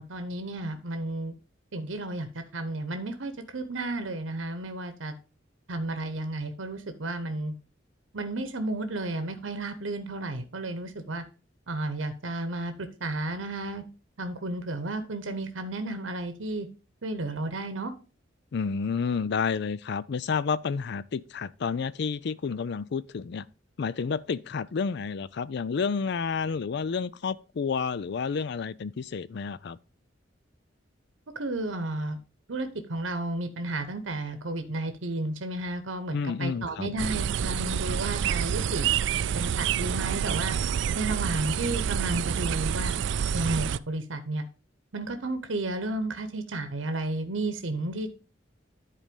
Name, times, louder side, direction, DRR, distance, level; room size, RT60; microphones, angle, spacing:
voice 1, 0.0-1.4 1.7-5.1 5.7-7.5 8.1-11.2 11.7-12.7 13.0-13.8 14.2-16.7 17.0-17.9 31.3-32.2 32.5-38.9 39.3-40.5 40.9-42.9 43.3-44.4 44.9-48.2, right 2 dB, 90° right, 0.9 m, -32 dB
voice 2, 18.5-23.4 23.8-29.8 36.1-36.9, left 5 dB, 60° left, 0.4 m, -30 dB
sound 1, 37.0-43.8, right 8 dB, 65° right, 0.3 m, -28 dB
10.5 x 4.2 x 5.2 m
head